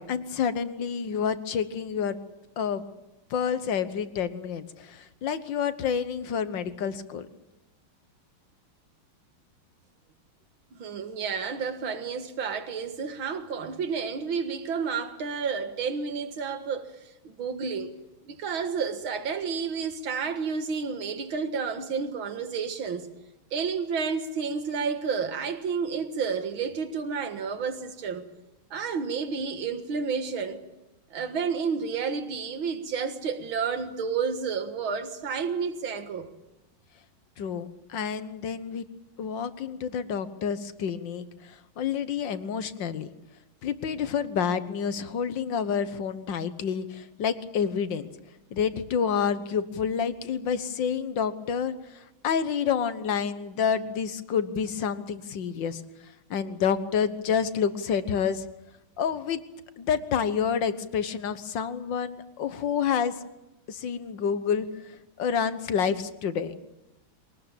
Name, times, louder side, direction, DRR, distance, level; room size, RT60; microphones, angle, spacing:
voice 1, 0.0-2.2 2.6-2.8 3.3-7.3 37.4-38.9 39.2-43.1 43.6-48.1 48.5-55.8 56.3-58.5 59.0-59.4 59.8-63.1 63.7-66.5, left 7 dB, 65° left, 1.8 m, -29 dB
voice 2, 10.7-16.9 17.2-18.0 18.3-23.1 23.5-28.3 28.7-30.6 31.1-36.3, right 5 dB, 70° right, 2.5 m, -30 dB
23.5 x 19.0 x 8.9 m
omnidirectional pair, 2.3 m